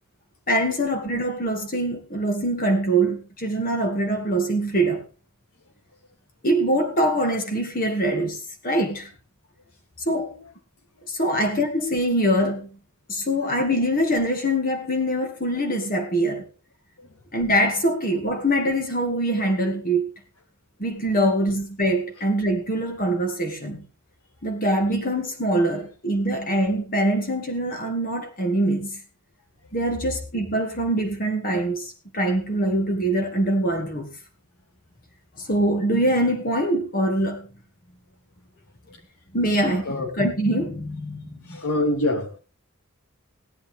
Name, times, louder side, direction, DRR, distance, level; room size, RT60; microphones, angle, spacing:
voice 1, 0.5-5.0 6.4-9.1 10.1-10.4 11.1-12.7 13.1-16.5 17.3-20.1 20.8-23.9 24.4-29.0 29.7-34.1 35.4-37.5 39.3-41.4, right 1 dB, 40° left, 2.4 m, -23 dB
voice 2, 41.5-42.4, left 1 dB, 75° left, 4.3 m, -25 dB
17.0 x 12.0 x 3.6 m
head